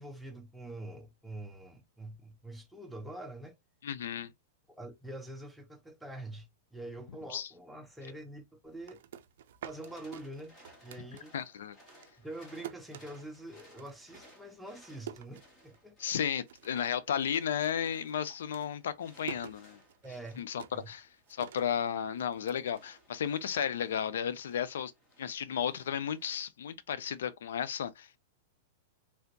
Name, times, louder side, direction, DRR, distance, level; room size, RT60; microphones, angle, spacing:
voice 1, 0.0-3.5 4.7-9.0 9.6-10.5 10.8-11.3 12.2-16.0 20.0-20.4 20.7-20.9, right 1 dB, ahead, 0.7 m, -45 dB
voice 2, 3.8-4.3 7.3-7.5 11.3-11.8 16.0-19.8 20.4-24.9 25.2-28.2, left 8 dB, 85° left, 0.4 m, -34 dB
sound 1, 8.6-11.6 11.9-16.0 16.3-17.0 17.2-23.5, right 10 dB, 70° right, 0.4 m, -49 dB
sound 2, 9.7-26.4, equal, 20° left, 1.5 m, -61 dB
3.3 x 2.5 x 2.6 m
supercardioid pair, 145°, 0 cm